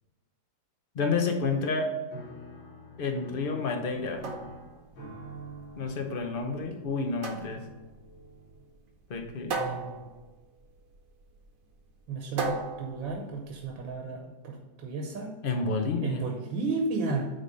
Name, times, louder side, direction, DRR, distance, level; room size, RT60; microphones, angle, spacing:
voice 1, 0.9-1.9 3.0-4.3 5.8-7.7 9.1-9.6 15.4-16.2, left 4 dB, 55° left, 4 dB, 0.5 m, -30 dB
Piano, 2.1-8.9, right 1 dB, 85° left, 2.5 m, -47 dB
sound 1, 3.9-13.9, right 3 dB, 55° right, 1.2 m, -39 dB
voice 2, 9.5-10.1 12.1-15.3 16.0-17.3, right 3 dB, 75° right, 1 dB, 1.7 m, -33 dB
9.2 x 3.5 x 5.3 m, 1.2 s
omnidirectional pair, 2.1 m